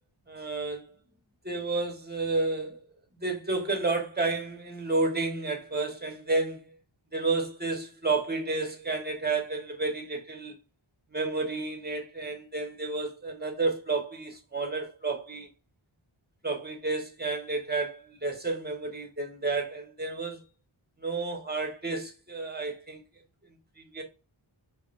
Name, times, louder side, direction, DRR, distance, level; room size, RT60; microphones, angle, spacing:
voice 1, 0.3-0.8 1.4-2.8 3.2-6.6 7.1-10.5 11.1-15.5 16.4-20.4 21.0-23.0 23.8-24.0, right 3 dB, 20° right, 1.2 m, -31 dB
5.0 x 2.4 x 2.6 m
wide cardioid pair, 55°, 48 cm